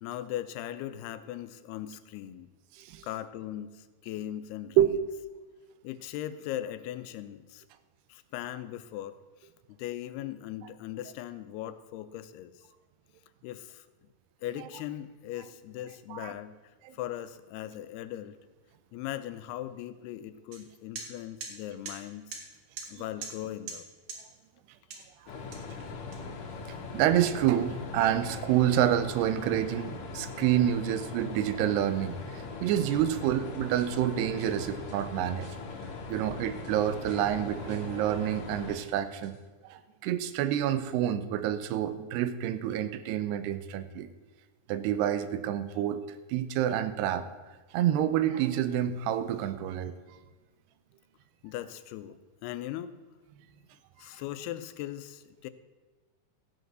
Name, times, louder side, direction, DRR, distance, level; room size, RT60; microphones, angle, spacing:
voice 1, 0.0-2.5 3.0-4.8 5.8-7.6 8.1-12.5 13.4-13.9 14.4-16.6 16.9-18.4 18.9-22.4 22.9-23.9 51.4-53.0 54.0-55.5, left 12 dB, 85° left, 12 dB, 2.7 m, -39 dB
sound 1, 20.5-20.6 21.0-21.1 21.4-21.5 21.9-22.0 22.3-22.4 22.8-22.9 23.2-23.4 23.7-23.8 24.1-24.2 24.9-25.1 25.5-26.5, right 5 dB, 60° right, 3.1 m, -40 dB
sound 2, 25.3-38.7, left 4 dB, 60° left, 2.7 m, -41 dB
voice 2, 26.9-35.5 36.1-39.3 39.6-44.1 44.7-46.0 46.3-47.3 47.7-49.9, right 11 dB, 90° right, 12 dB, 2.8 m, -28 dB
sound 3, 32.9-35.5 35.8-38.9 39.1-39.3, right 2 dB, 45° right, 1.5 m, -49 dB
14.5 x 8.0 x 6.2 m, 1.3 s
omnidirectional pair, 4.6 m